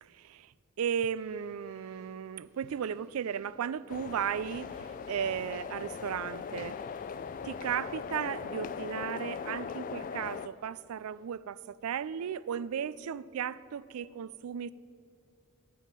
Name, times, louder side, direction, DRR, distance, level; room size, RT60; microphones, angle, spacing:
voice 1, 0.0-0.5 0.8-6.8 7.4-14.7, right 8 dB, 85° right, 0.4 m, -35 dB
sound 1, 1.1-11.2, right 1 dB, 50° right, 2.7 m, -66 dB
sound 2, 3.9-10.5, left 6 dB, 40° left, 0.3 m, -39 dB
13.0 x 5.6 x 8.8 m
head